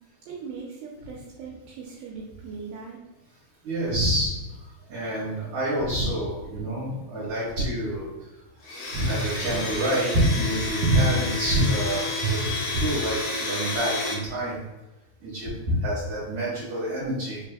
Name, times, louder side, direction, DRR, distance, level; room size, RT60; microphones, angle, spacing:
voice 1, 0.3-3.0, right 5 dB, 80° right, -2 dB, 2.4 m, -39 dB
voice 2, 3.6-8.1 8.9-12.4 12.7-14.6 15.2-17.4, right 1 dB, 55° right, -11 dB, 2.5 m, -26 dB
Domestic sounds home sounds, 8.6-14.1, left 3 dB, 70° left, 2.3 m, -30 dB
5.5 x 3.3 x 2.3 m, 1.1 s
omnidirectional pair, 4.3 m